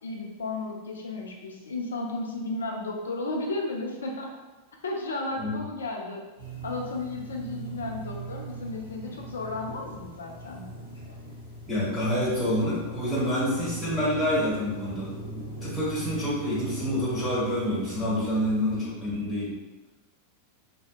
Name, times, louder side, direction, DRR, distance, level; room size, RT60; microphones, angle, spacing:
voice 1, 0.0-4.3 4.8-6.2 6.6-10.6, left 2 dB, 70° left, 0 dB, 0.3 m, -33 dB
sound 1, 6.4-18.8, right 2 dB, 90° right, 0.9 m, -40 dB
voice 2, 11.7-15.1 15.6-19.5, equal, 10° left, -9 dB, 1.1 m, -27 dB
2.6 x 2.1 x 2.4 m, 1.2 s
figure-of-eight pair, 90°, 0 cm